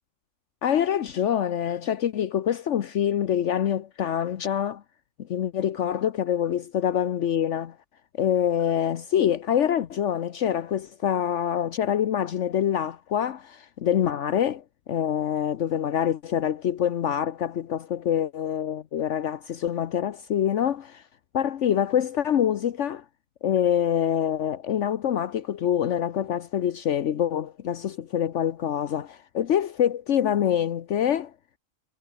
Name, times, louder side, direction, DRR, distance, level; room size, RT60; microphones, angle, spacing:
voice 1, 0.6-4.8 5.3-7.7 8.2-14.6 14.9-21.0 21.3-23.0 23.4-29.0 29.3-31.3, left 9 dB, 70° left, 1.2 m, -25 dB
omnidirectional pair, 1.3 m